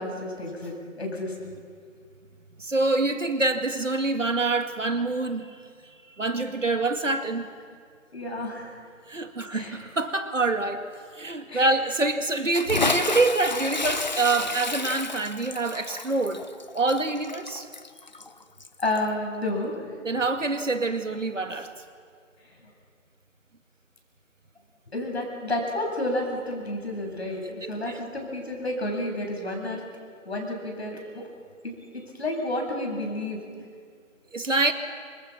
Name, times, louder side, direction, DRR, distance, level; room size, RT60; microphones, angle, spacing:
voice 1, 0.0-1.3 8.1-8.8 9.5-9.8 11.5-11.8 18.8-20.0 22.4-22.6 24.9-29.8 30.2-31.3 31.6-31.7 32.1-33.4, left 1 dB, 55° left, 1 dB, 7.8 m, -31 dB
voice 2, 2.6-5.6 6.2-7.5 9.1-10.8 11.1-16.4 16.7-17.7 20.0-21.7 27.6-27.7 34.3-34.7, right 3 dB, 70° right, 7 dB, 2.3 m, -26 dB
Bathtub (filling or washing) / Splash splatter, 12.5-19.1, left 3 dB, 35° left, 0.8 m, -31 dB
28.5 x 26.5 x 5.9 m, 2.1 s
figure-of-eight pair, 160°, 39 cm